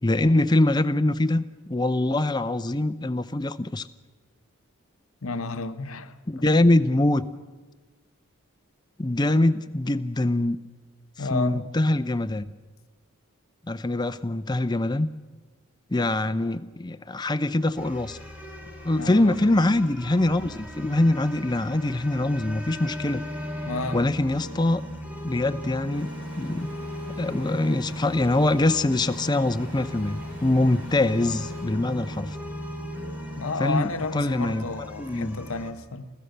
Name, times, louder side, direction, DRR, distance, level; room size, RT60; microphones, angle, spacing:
voice 1, 0.0-3.9 6.3-7.2 9.0-10.6 11.3-12.5 13.7-15.1 15.9-18.2 18.8-23.2 23.9-24.8 25.2-26.7 27.1-32.4 33.6-34.7 35.0-35.4, left 2 dB, 20° left, 0.6 m, -23 dB
voice 2, 5.2-6.1 6.6-6.7 11.2-11.7 18.9-19.4 23.6-24.1 33.4-36.1, left 3 dB, 75° left, 1.0 m, -31 dB
sound 1, 17.8-35.7, equal, 10° right, 2.5 m, -37 dB
Stream, 25.9-31.6, equal, 70° right, 7.5 m, -49 dB
29.0 x 14.0 x 6.7 m
head